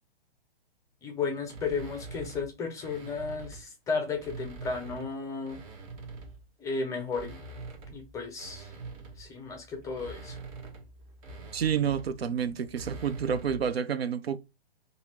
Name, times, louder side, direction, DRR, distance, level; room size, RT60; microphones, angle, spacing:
voice 1, 1.0-5.6 6.6-7.4 7.9-8.7 9.2-10.4, left 4 dB, 10° left, 0.5 m, -34 dB
sound 1, 1.5-3.7 4.1-6.5 7.0-13.7, right 3 dB, 35° right, 1.0 m, -45 dB
voice 2, 11.5-14.4, right 8 dB, 80° right, 0.6 m, -29 dB
2.8 x 2.7 x 4.1 m
figure-of-eight pair, 125°, 30 cm